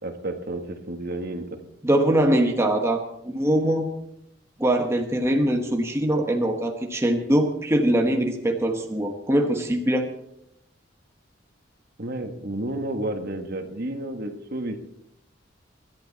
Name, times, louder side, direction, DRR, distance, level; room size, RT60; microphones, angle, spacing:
voice 1, 0.0-1.4 12.0-14.8, right 1 dB, 55° right, 6 dB, 1.6 m, -31 dB
voice 2, 1.8-3.9 4.6-10.1, right 1 dB, 15° right, 2 dB, 1.2 m, -22 dB
25.0 x 11.5 x 4.2 m, 0.79 s
head